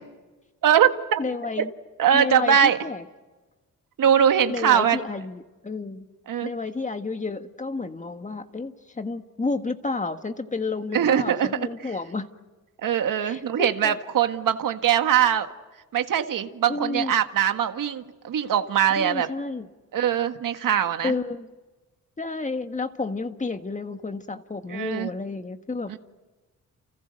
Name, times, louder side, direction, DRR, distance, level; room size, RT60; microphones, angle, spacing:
voice 1, 0.6-1.2 1.6-1.7 2.0-2.8 4.0-5.0 6.3-6.5 10.9-11.6 12.8-15.5 15.9-19.3 19.9-21.1 24.7-25.1 25.9-26.0, right 9 dB, 85° right, 7 dB, 1.7 m, -22 dB
voice 2, 1.2-1.7 2.1-3.0 4.5-6.1 6.4-12.3 13.2-13.9 16.7-17.1 18.9-19.7 21.0-21.5 22.2-25.9, left 3 dB, 25° left, 8 dB, 1.6 m, -31 dB
30.0 x 29.5 x 6.6 m, 1.2 s
cardioid pair, 115°, 32 cm